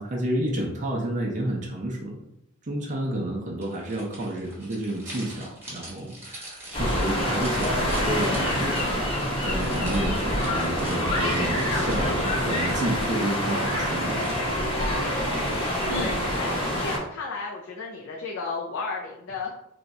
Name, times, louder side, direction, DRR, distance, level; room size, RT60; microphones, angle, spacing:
voice 1, 0.0-2.2 2.6-14.6, right 1 dB, 35° right, -2 dB, 0.5 m, -30 dB
sound 1, 3.6-14.8, right 1 dB, 10° right, 0.9 m, -44 dB
sound 2, 6.7-17.0, equal, 25° left, 0.9 m, -26 dB
voice 2, 15.9-19.5, left 4 dB, 65° left, -2 dB, 0.4 m, -33 dB
2.6 x 2.2 x 4.0 m, 0.83 s
head